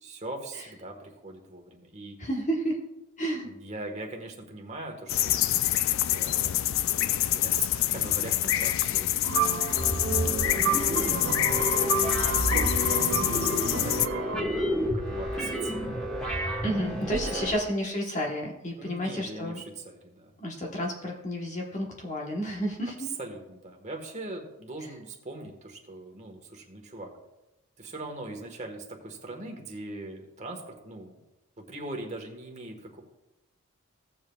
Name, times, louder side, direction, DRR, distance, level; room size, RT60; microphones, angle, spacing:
voice 1, 0.0-2.2 3.4-5.5 6.1-6.7 7.1-9.1 10.1-15.8 17.1-17.6 18.8-20.3 23.2-27.1 27.8-31.2 31.6-33.0, right 2 dB, 30° right, 2 dB, 1.4 m, -41 dB
voice 2, 2.2-2.8 3.2-3.5 16.6-19.6 20.4-23.1, equal, 35° left, 0 dB, 1.2 m, -31 dB
sound 1, 5.1-14.1, left 13 dB, 60° left, 0.3 m, -26 dB
sound 2, 9.2-14.4, right 7 dB, 65° right, 0.5 m, -31 dB
sound 3, 9.8-17.5, equal, 5° left, 1.6 m, -31 dB
16.5 x 7.3 x 2.3 m, 0.99 s
head